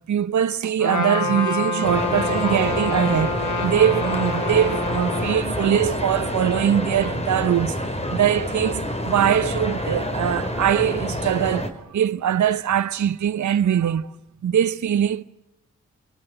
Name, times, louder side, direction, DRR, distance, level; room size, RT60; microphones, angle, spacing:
voice 1, 0.1-7.8 8.1-14.1 14.4-15.2, right 9 dB, 65° right, 0.9 m, -22 dB
Trumpet, 0.8-5.4, left 3 dB, 70° left, 5.1 m, -27 dB
sound 1, 1.8-11.7, left 1 dB, 20° left, 4.6 m, -27 dB
29.0 x 22.5 x 7.9 m
supercardioid pair, 40°, 31 cm